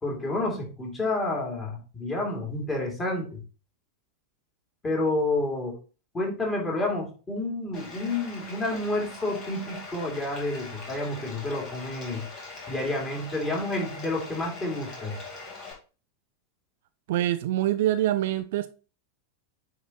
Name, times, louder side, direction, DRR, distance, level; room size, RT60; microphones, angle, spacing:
voice 1, 0.0-3.4 4.8-5.8 6.1-12.3 12.7-15.2, left 2 dB, 15° left, 2.7 m, -29 dB
Bathtub (filling or washing), 7.7-15.7, left 3 dB, 35° left, 2.3 m, -42 dB
voice 2, 17.1-18.7, right 13 dB, 55° right, 0.4 m, -25 dB
9.3 x 3.9 x 3.0 m
figure-of-eight pair, 90°, 0 cm